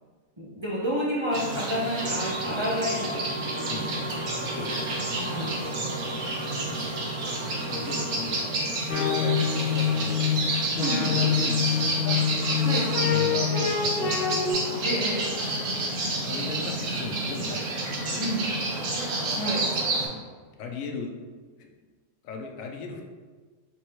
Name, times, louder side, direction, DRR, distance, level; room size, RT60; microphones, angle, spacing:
voice 1, 0.4-3.3 3.6-4.2 5.1-5.6 6.7-7.4 10.8-11.0 12.6-12.9 14.8-15.3 18.2-18.4 19.4-19.7, equal, 30° right, -6 dB, 0.5 m, -30 dB
sound 1, 1.3-20.1, right 2 dB, 90° right, 1.3 m, -30 dB
sound 2, 2.0-8.5, right 2 dB, 60° right, 1.3 m, -38 dB
voice 2, 4.4-4.8 7.8-8.5 8.9-10.3 10.9-11.6 12.0-12.3 12.7-13.5 13.8-14.4 16.2-17.7 18.1-18.6 20.0-20.3 20.6-21.1 21.6-21.7 22.2-23.0, left 3 dB, 90° left, 3 dB, 1.0 m, -38 dB
sound 3, 8.9-14.5, left 7 dB, 65° left, 1.0 m, -26 dB
4.7 x 3.5 x 3.0 m, 1.4 s
omnidirectional pair, 1.3 m